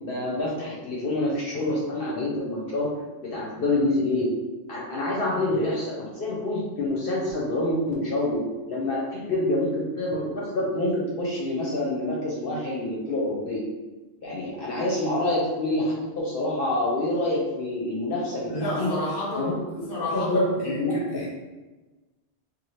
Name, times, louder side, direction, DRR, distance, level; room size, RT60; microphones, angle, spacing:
voice 1, 0.0-2.9 3.2-4.3 4.7-8.4 8.7-13.6 14.2-18.9 19.3-19.5 20.1-21.2, left 1 dB, 55° left, -5 dB, 0.8 m, -27 dB
voice 2, 18.5-21.4, left 2 dB, 25° left, -4 dB, 0.6 m, -31 dB
2.7 x 2.5 x 3.1 m, 1.2 s
omnidirectional pair, 1.2 m